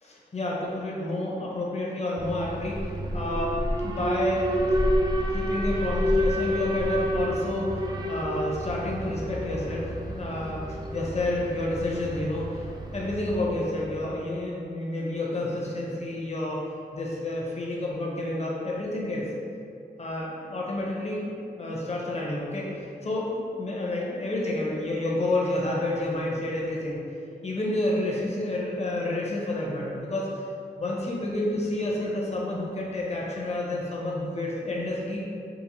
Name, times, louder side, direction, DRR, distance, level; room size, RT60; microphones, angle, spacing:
voice 1, 0.0-3.5 3.8-4.6 5.3-10.6 10.9-12.6 12.9-16.6 16.9-19.3 20.0-21.3 21.6-27.0 27.4-30.4 30.8-35.2, left 1 dB, 40° left, -3 dB, 0.7 m, -29 dB
Alarm, 2.2-14.2, equal, 25° right, 0.3 m, -29 dB
3.8 x 2.5 x 2.9 m, 2.5 s
wide cardioid pair, 95°, 18 cm